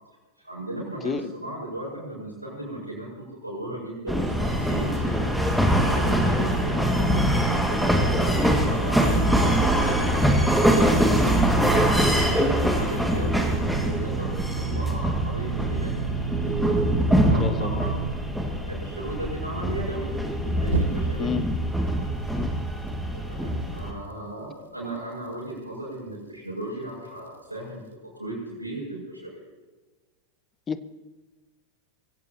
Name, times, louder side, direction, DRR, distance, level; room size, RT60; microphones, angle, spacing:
voice 1, 0.4-10.9 11.5-16.1 16.4-18.0 18.7-21.4 23.0-27.8 28.1-29.4, right 1 dB, 85° right, -9 dB, 6.2 m, -36 dB
sound 1, 4.1-23.9, equal, ahead, 2.1 m, -23 dB
sound 2, 12.3-18.1 20.7-21.4, right 9 dB, 65° right, 0.8 m, -32 dB
voice 2, 17.1-17.8 21.2-21.4 22.3-22.5 30.7-30.9, left 6 dB, 20° left, 14 dB, 0.8 m, -30 dB
22.5 x 17.0 x 3.0 m, 1.3 s
figure-of-eight pair, 90°, 0 cm